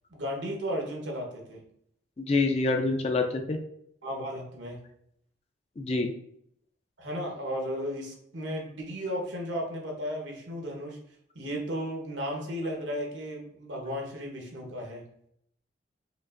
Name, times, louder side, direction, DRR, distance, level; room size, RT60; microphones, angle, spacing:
voice 1, 0.1-1.6 4.0-4.8 7.0-11.0 11.3-15.1, equal, 75° right, 0 dB, 1.1 m, -34 dB
voice 2, 2.2-3.6 5.8-6.1, left 3 dB, 35° left, 4 dB, 0.4 m, -26 dB
5.0 x 2.5 x 2.5 m, 0.71 s
head